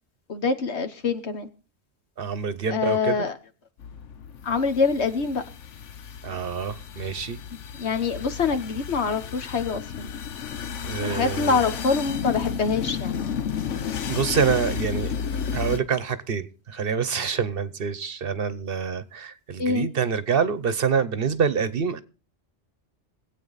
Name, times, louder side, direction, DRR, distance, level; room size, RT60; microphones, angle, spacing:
voice 1, 0.3-1.5 2.7-3.3 4.4-5.4 7.8-10.1 11.0-13.1 19.6-19.9, left 5 dB, 65° left, 1.4 m, -25 dB
voice 2, 2.2-3.3 6.2-7.4 10.8-11.6 14.1-22.0, right 6 dB, 55° right, 0.9 m, -26 dB
sound 1, 3.8-15.8, left 7 dB, 85° left, 1.2 m, -32 dB
23.0 x 8.4 x 4.0 m
omnidirectional pair, 1.2 m